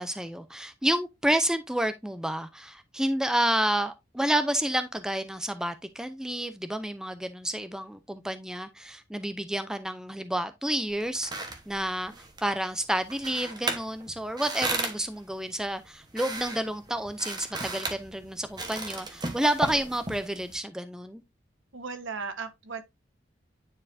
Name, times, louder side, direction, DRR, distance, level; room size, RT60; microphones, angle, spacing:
voice 1, 0.0-11.3 11.7-12.1 12.4-21.2, right 1 dB, 5° right, 0.5 m, -30 dB
sound 1, 10.9-20.6, right 3 dB, 20° right, 1.1 m, -36 dB
voice 2, 21.7-22.8, right 5 dB, 80° right, 1.1 m, -36 dB
9.7 x 4.5 x 2.6 m
head